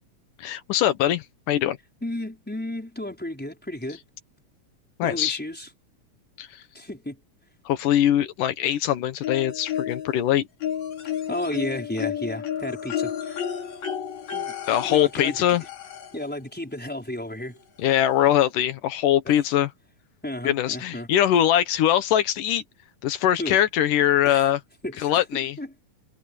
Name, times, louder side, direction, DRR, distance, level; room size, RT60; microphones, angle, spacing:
voice 1, 0.4-1.8 5.0-5.4 6.4-6.6 7.7-10.5 14.7-15.6 17.8-19.7 20.4-22.6 23.0-24.6 25.0-25.6, left 11 dB, 85° left, 2.8 m, -22 dB
voice 2, 2.0-4.0 5.0-5.7 6.7-7.2 11.3-13.4 14.3-14.5 14.8-15.4 16.1-17.6 19.2-19.4 20.2-21.1 23.4-23.6 24.2-24.4 24.8-25.7, left 1 dB, 5° left, 4.8 m, -33 dB
sound 1, 9.2-10.2 10.6-16.3 17.5-17.6 18.0-18.1, left 9 dB, 60° left, 4.0 m, -32 dB
omnidirectional pair, 3.6 m